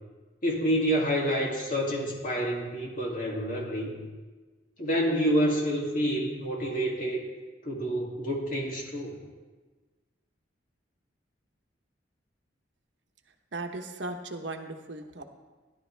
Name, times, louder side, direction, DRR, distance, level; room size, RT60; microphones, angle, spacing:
voice 1, 0.4-3.9 4.8-7.2 7.6-9.1, equal, 45° left, -2 dB, 2.5 m, -28 dB
voice 2, 13.5-15.2, right 2 dB, 70° right, 5 dB, 1.0 m, -37 dB
16.0 x 11.0 x 3.4 m, 1.3 s
head